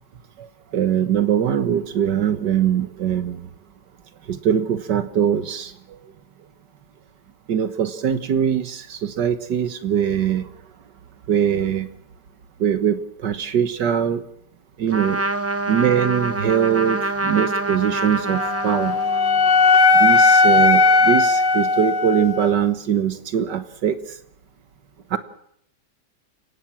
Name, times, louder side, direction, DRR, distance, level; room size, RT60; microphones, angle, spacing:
voice 1, 0.7-3.5 4.3-5.7 7.5-10.5 11.3-11.9 12.6-14.2 14.8-15.2 15.7-19.0 19.9-24.0 25.1-25.2, right 9 dB, 80° right, 10 dB, 1.9 m, -22 dB
Trumpet, 14.9-19.5, right 1 dB, 20° right, 0.4 m, -26 dB
Wind instrument woodwind instrument, 18.3-22.5, left 3 dB, 75° left, 2.0 m, -17 dB
30.0 x 17.5 x 6.0 m, 0.71 s
omnidirectional pair, 1.8 m